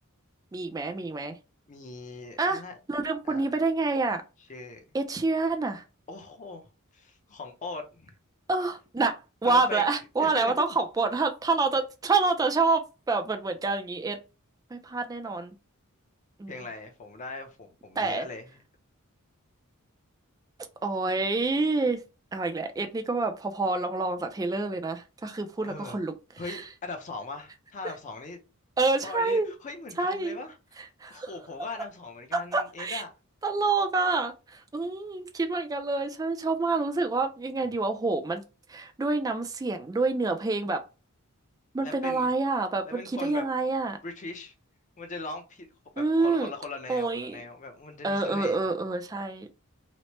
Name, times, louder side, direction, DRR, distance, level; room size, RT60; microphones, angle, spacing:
voice 1, 0.5-1.4 2.4-2.6 2.9-4.2 4.9-5.8 8.5-14.2 14.7-15.5 16.4-16.6 18.0-18.3 20.8-22.0 22.3-26.1 26.5-26.6 28.8-29.5 30.0-30.4 31.0-31.3 32.3-33.0 33.4-38.4 38.7-40.8 41.7-44.0 46.0-46.5 46.9-47.4 48.0-49.5, right 3 dB, 15° right, 0.3 m, -27 dB
voice 2, 1.7-2.7 3.2-3.5 4.5-4.8 6.1-6.6 6.9-8.1 9.4-9.8 10.2-10.8 16.5-18.6 25.6-26.0 26.4-28.4 28.9-30.8 31.1-33.1 41.8-42.3 42.9-43.4 44.0-44.5 45.0-45.7 45.9-48.7, left 3 dB, 35° left, 0.6 m, -40 dB
3.0 x 2.1 x 2.9 m
head